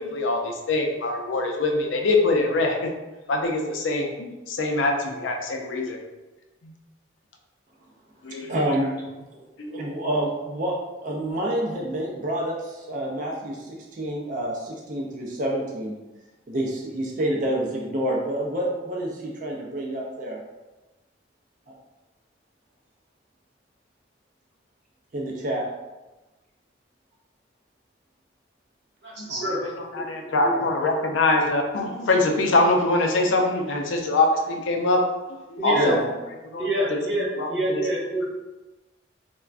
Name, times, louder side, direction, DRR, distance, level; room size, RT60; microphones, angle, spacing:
voice 1, 0.0-2.9 3.3-6.0 6.6-6.7 8.2-8.5 9.6-9.7 29.2-35.0 35.3-36.0 36.5-36.9 37.4-37.8, left 2 dB, 85° left, 2 dB, 0.4 m, -24 dB
voice 2, 8.5-9.0 9.3-9.4 9.7-10.8 11.0-15.9 16.5-20.4 25.1-25.7 35.7-36.1, right 1 dB, 40° right, -2 dB, 0.4 m, -28 dB
voice 3, 29.0-29.7 30.4-30.5 35.6-35.9 36.6-38.2, right 1 dB, 60° right, -6 dB, 1.1 m, -27 dB
3.3 x 2.2 x 2.4 m, 1.1 s
head